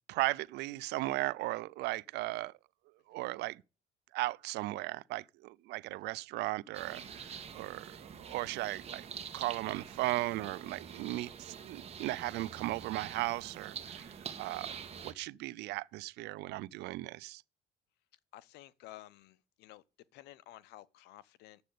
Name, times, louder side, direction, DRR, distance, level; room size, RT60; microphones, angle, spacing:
voice 1, 0.1-2.5 3.1-3.6 4.1-9.1 9.3-14.7 15.0-17.4, right 19 dB, 85° right, 0.5 m, -36 dB
sound 1, 6.7-15.1, right 7 dB, 35° right, 1.8 m, -46 dB
voice 2, 14.3-14.6 18.3-19.8 20.1-21.6, left 15 dB, 85° left, 0.8 m, -53 dB
9.6 x 7.6 x 8.5 m
cardioid pair, 110°, 17 cm